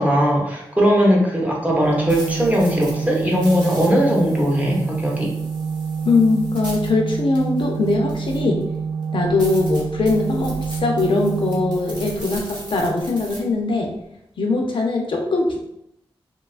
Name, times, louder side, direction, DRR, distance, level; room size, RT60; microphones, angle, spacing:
voice 1, 0.0-5.3, equal, 15° right, -2 dB, 0.6 m, -19 dB
sound 1, 1.8-8.6 9.0-9.1 9.4-13.4, equal, 50° right, 0.9 m, -39 dB
Organ, 1.8-12.7, right 6 dB, 80° right, 0.5 m, -27 dB
voice 2, 6.1-8.6 9.1-13.9 14.4-15.6, left 3 dB, 60° left, 1 dB, 0.4 m, -21 dB
2.7 x 2.3 x 2.4 m, 0.79 s
wide cardioid pair, 120°, 10 cm